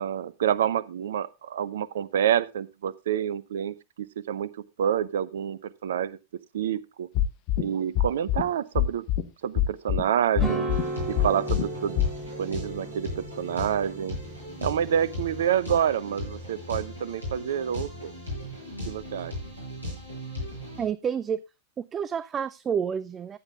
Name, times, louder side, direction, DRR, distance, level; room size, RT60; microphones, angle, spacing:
voice 1, 0.0-4.5 4.8-6.2 6.5-7.1 7.6-9.0 9.4-10.7 11.1-12.0 12.4-14.2 14.6-18.1 18.9-19.3, right 9 dB, 60° right, 0.8 m, -28 dB
sound 1, 7.1-7.6 8.0-8.4 8.8-9.2 9.6-10.0 10.4-10.8 11.2-11.6 12.0-12.1, left 11 dB, 45° left, 1.2 m, -23 dB
sound 2, 10.4-15.6, right 2 dB, 5° right, 3.9 m, -35 dB
sound 3, 10.7-20.9, left 1 dB, 85° left, 7.4 m, -37 dB
voice 2, 20.8-21.4 21.8-23.4, right 7 dB, 25° right, 0.5 m, -29 dB
15.0 x 10.0 x 2.4 m
figure-of-eight pair, 90°, 0 cm